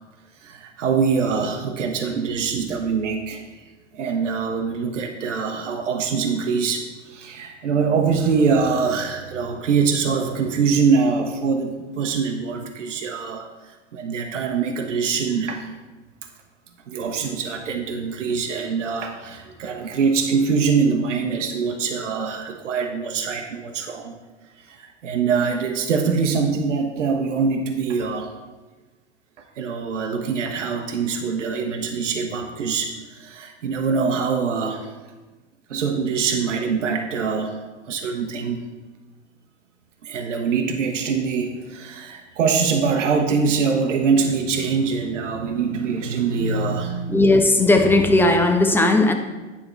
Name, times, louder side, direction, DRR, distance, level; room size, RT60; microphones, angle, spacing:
voice 1, 0.4-3.4 3.9-13.4 13.9-15.7 16.9-24.2 24.7-28.3 29.6-34.9 35.7-38.6 40.0-47.3, right 5 dB, 75° right, 0.9 m, -23 dB
voice 2, 47.1-49.1, left 2 dB, 5° left, 0.6 m, -16 dB
9.7 x 3.6 x 4.4 m
hypercardioid pair, 95°, 36 cm